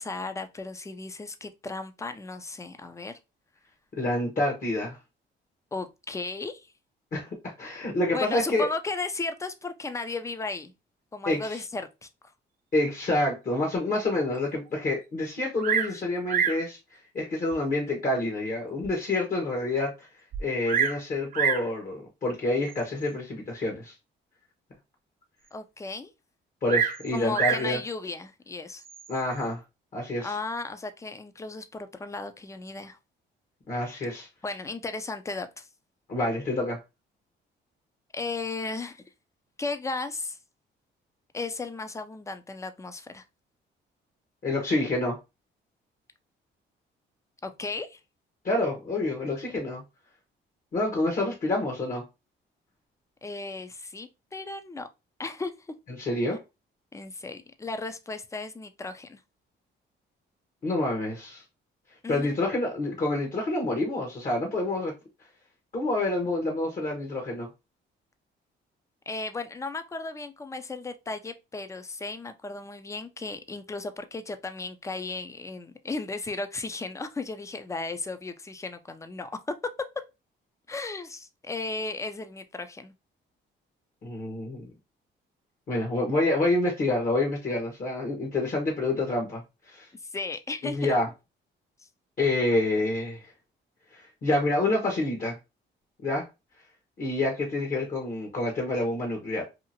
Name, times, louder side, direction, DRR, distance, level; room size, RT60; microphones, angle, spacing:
voice 1, 0.0-3.1 5.7-6.7 8.1-10.7 11.1-12.1 25.5-26.1 27.1-28.8 30.2-33.0 34.4-35.7 38.1-39.0 39.6-40.4 41.3-43.2 47.4-48.0 53.2-54.9 55.2-55.5 56.9-59.2 62.0-62.3 69.1-79.3 80.7-82.9 90.1-90.8, left 3 dB, 15° left, 0.4 m, -35 dB
voice 2, 4.0-5.0 7.1-8.7 11.3-11.6 12.7-16.8 17.1-20.1 20.4-23.9 26.6-27.8 29.1-29.6 29.9-30.3 33.7-34.3 36.1-36.8 44.4-45.2 48.4-49.8 50.7-52.0 56.0-56.4 60.6-61.4 62.1-64.9 65.7-67.5 84.0-84.7 85.7-89.4 89.7-89.9 90.6-91.1 92.2-93.2 93.9-95.3 96.0-96.2 97.0-99.4, left 2 dB, 45° left, 0.9 m, -27 dB
Bird vocalization bird call bird song, 15.6-16.0 16.3-16.7 17.5-17.6 18.2-18.3 18.8-18.9 19.1-19.2 20.3-21.0 21.3-21.7 22.7-23.0 26.7-27.7 28.8-29.2, right 8 dB, 45° right, 0.4 m, -27 dB
2.8 x 2.4 x 2.6 m
cardioid pair, 90°, 20 cm